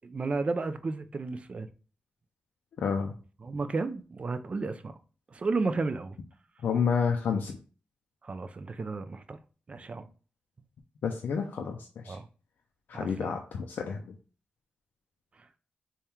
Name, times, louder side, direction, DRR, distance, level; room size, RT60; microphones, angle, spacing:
voice 1, 0.0-1.7 3.4-4.9 5.3-6.2 8.2-9.4 9.7-10.1 12.1-12.3 12.9-13.3, right 3 dB, 40° right, 0.4 m, -33 dB
voice 2, 2.8-3.1 6.6-7.6 11.0-12.2 12.9-14.1, left 6 dB, 85° left, 0.4 m, -30 dB
3.5 x 2.2 x 4.3 m
cardioid pair, 85°, 3 cm